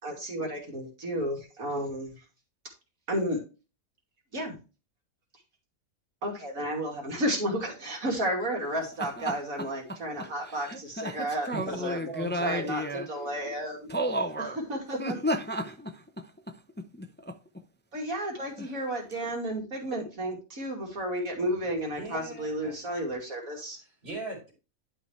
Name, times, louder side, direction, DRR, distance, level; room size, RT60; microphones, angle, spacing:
voice 1, 0.0-2.1 3.1-3.4 4.3-4.5 6.2-12.0 12.4-12.8 13.1-13.9 14.7-15.1 17.9-23.8, right 1 dB, 70° right, 2.9 m, -32 dB
voice 2, 9.0-13.1 13.9-14.6 15.0-17.4 18.6-18.7, equal, 15° left, 0.3 m, -34 dB
voice 3, 11.5-12.7 13.2-13.3 21.9-22.8 23.2-24.5, right 1 dB, 45° right, 4.2 m, -40 dB
11.0 x 5.6 x 3.2 m
omnidirectional pair, 1.5 m